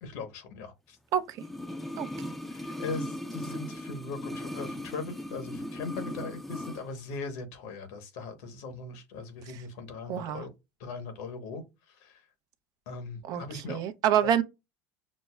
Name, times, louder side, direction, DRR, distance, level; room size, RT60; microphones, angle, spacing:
voice 1, 0.0-1.0 2.5-10.5 10.8-12.2 12.9-13.8 14.2-14.3, left 4 dB, 75° left, 1.0 m, -39 dB
sound 1, 1.3-6.8 7.1-7.2, left 1 dB, ahead, 0.5 m, -38 dB
voice 2, 2.0-2.3 10.1-10.4 13.3-13.4 13.7-14.4, right 10 dB, 55° right, 0.5 m, -27 dB
6.1 x 2.0 x 2.3 m
hypercardioid pair, 90°, 8 cm